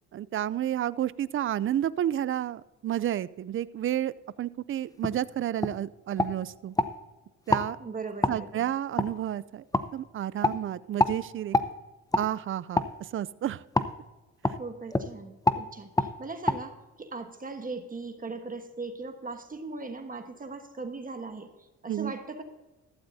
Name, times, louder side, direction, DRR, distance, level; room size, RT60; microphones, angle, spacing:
voice 1, 0.1-6.7 7.5-7.8 8.3-9.6 9.9-11.6 12.2-13.6 14.4-14.6 21.9-22.1, right 11 dB, 45° right, 18 dB, 0.5 m, -31 dB
sound 1, 5.0-5.2 5.6-5.8 6.2-6.9 7.5-7.7 8.2-8.4 9.0-9.1 9.7-9.9 10.4-10.6 11.0-11.2 11.5-11.7 12.1-12.3 12.7-12.9 13.7-13.9 14.4-14.6 14.9-15.1 15.4-15.6 16.0-16.1 16.5-16.6, left 2 dB, 10° left, 0.7 m, -25 dB
voice 2, 7.8-8.7 14.6-22.4, right 3 dB, 30° right, 6 dB, 1.3 m, -39 dB
14.5 x 13.0 x 2.7 m, 1.1 s
cardioid pair, 90°, 30 cm